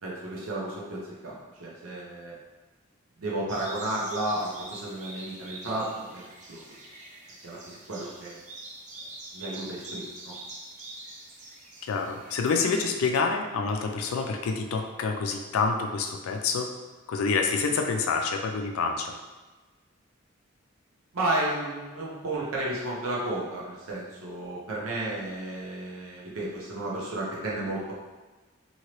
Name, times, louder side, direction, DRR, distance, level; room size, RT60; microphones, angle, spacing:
voice 1, 0.0-2.3 3.2-6.8 7.4-8.4 9.3-10.3 21.1-27.9, right 1 dB, 90° right, -5 dB, 0.8 m, -33 dB
sound 1, 3.5-12.8, right 2 dB, 35° right, 0.4 m, -44 dB
voice 2, 11.9-16.7 17.1-19.1, left 4 dB, 85° left, 4 dB, 0.4 m, -27 dB
2.9 x 2.8 x 3.0 m, 1.2 s
head